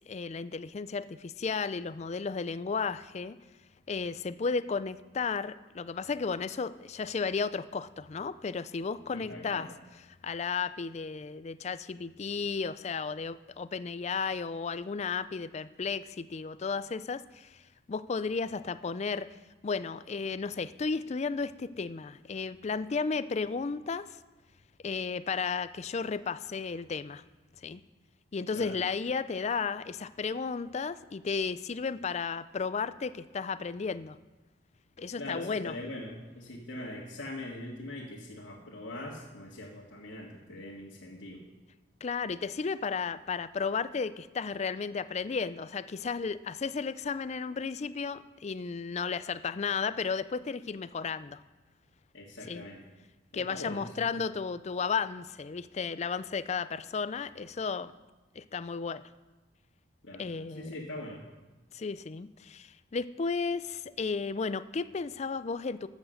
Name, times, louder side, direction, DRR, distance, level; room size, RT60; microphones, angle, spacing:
voice 1, 0.1-3.4 3.9-9.7 10.2-17.5 17.9-19.3 19.6-24.1 24.8-27.2 27.6-27.8 28.3-34.2 35.0-35.7 42.0-51.4 52.5-52.6 53.3-57.9 58.4-59.0 60.2-60.7 61.7-65.9, left 5 dB, 35° left, 15 dB, 0.4 m, -33 dB
voice 2, 9.1-9.7 28.5-28.8 35.2-41.4 52.1-52.8 53.3-54.1 60.0-60.3 60.5-61.3, left 1 dB, 85° left, -6 dB, 1.9 m, -42 dB
14.0 x 7.3 x 6.5 m, 1.1 s
head